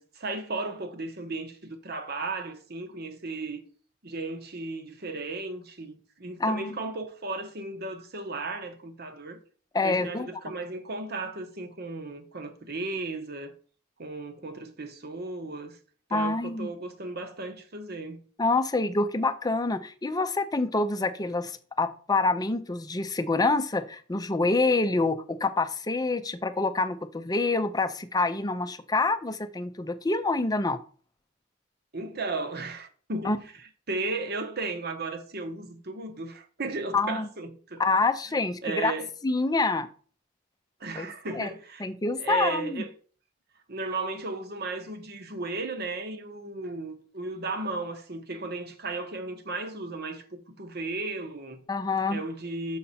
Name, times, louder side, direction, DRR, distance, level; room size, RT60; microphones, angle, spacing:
voice 1, 0.0-3.6 4.0-9.4 9.8-13.5 14.0-15.8 16.1-18.3 31.9-33.4 33.9-37.8 38.6-39.1 40.8-41.9 42.2-42.9 43.7-51.6 52.1-52.8, right 3 dB, 55° right, 1.0 m, -35 dB
voice 2, 6.4-6.8 9.7-10.3 16.1-16.7 18.4-30.8 33.2-33.4 36.9-37.3 37.8-38.9 39.2-39.9 41.0-41.1 41.3-41.5 41.8-42.8 51.7-52.2, left 3 dB, 20° left, 0.5 m, -26 dB
6.5 x 5.6 x 4.2 m
head